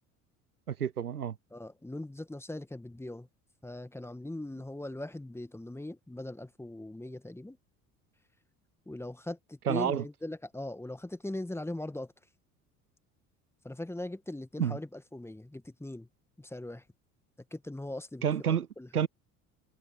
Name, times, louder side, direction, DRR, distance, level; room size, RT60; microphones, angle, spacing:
voice 1, 0.7-1.3 9.7-10.0 14.6-14.8 18.2-18.7 18.9-19.1, right 8 dB, 85° right, 0.7 m, -29 dB
voice 2, 1.5-3.3 3.6-7.6 8.9-12.1 13.6-16.1 16.4-16.9 17.5-19.1, left 1 dB, 5° left, 1.9 m, -40 dB
figure-of-eight pair, 60°, 44 cm